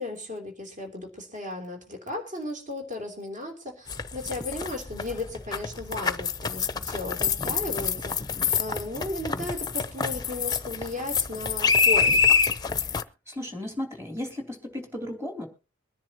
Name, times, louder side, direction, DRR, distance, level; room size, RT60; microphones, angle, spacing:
voice 1, 0.0-12.3, left 2 dB, 40° right, 2 dB, 3.3 m, -35 dB
sound 1, 3.9-13.0, left 6 dB, 20° left, 0.7 m, -26 dB
voice 2, 13.3-15.5, left 1 dB, 15° right, 3 dB, 3.2 m, -35 dB
23.0 x 10.5 x 3.0 m, 0.31 s
head